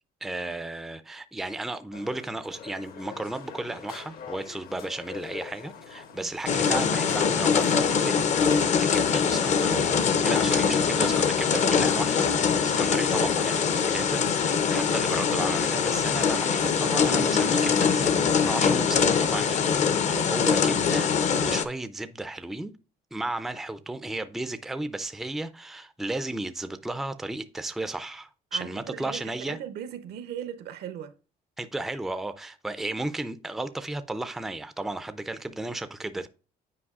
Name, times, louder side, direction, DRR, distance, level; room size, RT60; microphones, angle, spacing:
voice 1, 0.2-10.0 10.2-19.7 20.0-22.7 23.1-29.6 31.6-36.3, right 2 dB, ahead, 0.4 m, -34 dB
sound 1, 1.9-17.5, left 7 dB, 65° left, 0.9 m, -45 dB
sound 2, 6.5-21.6, left 6 dB, 45° left, 0.6 m, -23 dB
voice 2, 10.5-11.3 20.1-20.3 28.5-31.1, right 9 dB, 75° right, 0.7 m, -39 dB
8.6 x 4.6 x 2.4 m
cardioid pair, 110°, 17 cm